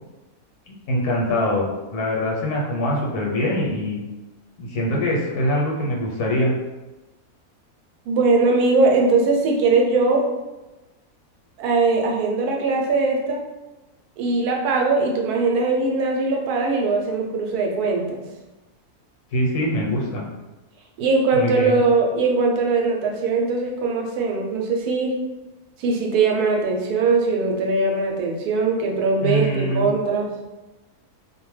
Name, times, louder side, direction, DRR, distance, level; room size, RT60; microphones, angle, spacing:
voice 1, 0.9-4.0 4.6-6.5 19.3-20.3 21.3-21.8 29.2-29.9, equal, 85° left, -2 dB, 1.2 m, -23 dB
voice 2, 8.1-10.2 11.6-13.4 14.2-18.2 21.0-25.1 25.8-30.3, right 3 dB, 80° right, 0 dB, 1.1 m, -20 dB
2.5 x 2.1 x 3.1 m, 1.1 s
omnidirectional pair, 1.6 m